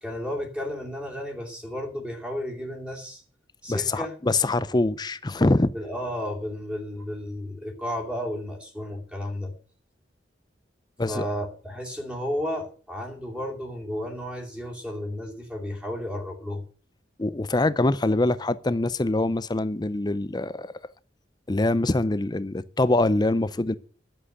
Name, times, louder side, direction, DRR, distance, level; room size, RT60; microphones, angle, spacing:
voice 1, 0.0-3.2 3.6-4.1 5.7-9.5 11.1-16.6, left 1 dB, 5° right, 2.7 m, -33 dB
voice 2, 3.7-5.7 11.0-11.3 17.2-20.7 21.5-23.7, left 2 dB, 25° left, 0.6 m, -24 dB
11.0 x 7.6 x 7.9 m
head